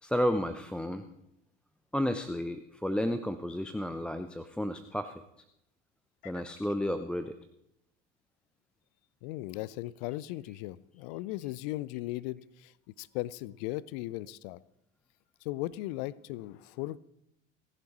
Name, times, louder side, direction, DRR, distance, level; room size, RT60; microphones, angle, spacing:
voice 1, 0.0-1.1 1.9-5.2 6.2-7.3, equal, 5° left, 8 dB, 0.5 m, -32 dB
voice 2, 9.2-14.6 15.4-17.0, left 17 dB, 50° left, 22 dB, 0.6 m, -37 dB
30.0 x 11.0 x 3.0 m, 0.80 s
figure-of-eight pair, 75°, 35 cm